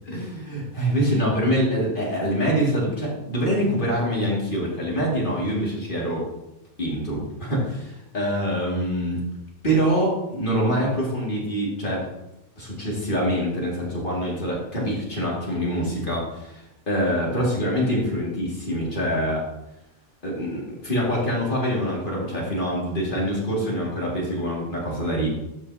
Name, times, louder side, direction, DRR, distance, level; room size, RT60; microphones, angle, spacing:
voice 1, 0.1-6.3 6.8-9.2 9.6-12.1 12.6-19.4 20.2-25.3, equal, 45° left, -4 dB, 2.5 m, -25 dB
13.0 x 5.5 x 2.8 m, 0.92 s
omnidirectional pair, 1.3 m